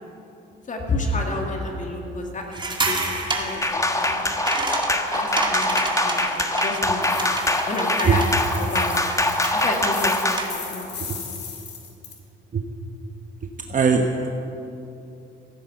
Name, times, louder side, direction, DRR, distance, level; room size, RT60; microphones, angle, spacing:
voice 1, 0.7-2.5 2.9-4.2 5.1-8.3 8.6-9.1 9.5-11.4, left 2 dB, 40° left, 1 dB, 2.2 m, -30 dB
sound 1, 2.5-10.7, right 2 dB, 25° right, 2.1 m, -29 dB
sound 2, 3.6-10.5, left 2 dB, 15° left, 1.2 m, -24 dB
sound 3, 7.0-12.2, left 6 dB, 60° left, 2.6 m, -38 dB
voice 2, 13.7-14.3, right 5 dB, 40° right, 3 dB, 1.1 m, -19 dB
15.5 x 10.0 x 7.8 m, 2.8 s
cardioid pair, 90°, 20 cm